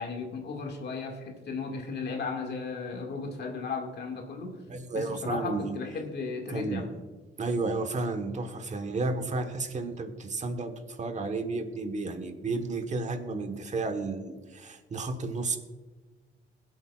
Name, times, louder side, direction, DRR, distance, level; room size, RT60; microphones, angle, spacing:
voice 1, 0.0-4.6 4.9-6.9, left 4 dB, 55° left, 1 dB, 2.0 m, -35 dB
voice 2, 4.7-5.7 6.5-6.9 7.4-15.6, right 3 dB, 35° right, 7 dB, 1.3 m, -32 dB
21.5 x 7.9 x 2.4 m, 1.3 s
cardioid pair, 90°, 20 cm